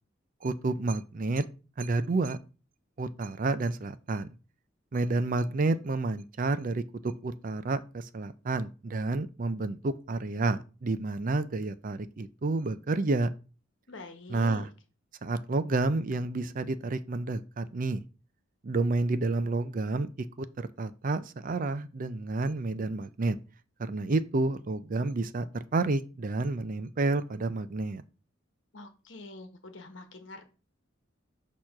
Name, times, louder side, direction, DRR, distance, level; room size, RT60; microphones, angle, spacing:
voice 1, 0.4-1.4 1.8-2.4 3.0-4.3 4.9-13.3 14.3-14.7 15.2-18.0 18.6-23.4 23.8-28.0, right 3 dB, 45° right, 0.5 m, -30 dB
voice 2, 13.9-14.7 28.7-30.4, left 2 dB, 70° left, 1.2 m, -45 dB
6.6 x 3.0 x 5.8 m
head